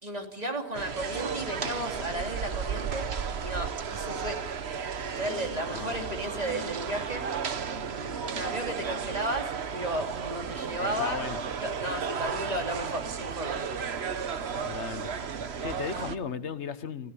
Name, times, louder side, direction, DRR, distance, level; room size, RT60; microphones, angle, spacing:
voice 1, 0.0-3.1 3.4-4.4 5.0-7.2 7.9-11.2 11.6-13.7, right 1 dB, 35° right, 3 dB, 3.1 m, -34 dB
sound 1, 0.7-16.2, right 6 dB, 70° right, 1.3 m, -34 dB
voice 2, 10.8-11.4 14.6-15.1 15.6-17.1, left 6 dB, 90° left, 12 dB, 1.4 m, -36 dB
30.0 x 15.5 x 8.5 m, 0.90 s
omnidirectional pair, 1.1 m